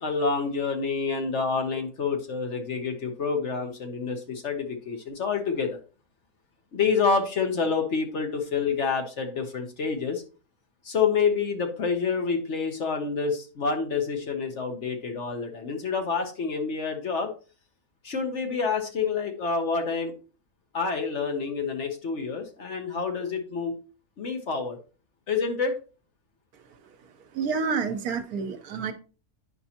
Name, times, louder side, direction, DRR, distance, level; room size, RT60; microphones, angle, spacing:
voice 1, 0.0-5.8 6.7-10.2 10.8-17.3 18.0-20.1 20.7-23.8 24.2-24.8 25.3-25.7, left 5 dB, 50° left, 4 dB, 1.1 m, -28 dB
voice 2, 27.3-28.9, right 5 dB, 70° right, 7 dB, 1.3 m, -28 dB
9.4 x 5.4 x 2.9 m, 0.37 s
omnidirectional pair, 1.7 m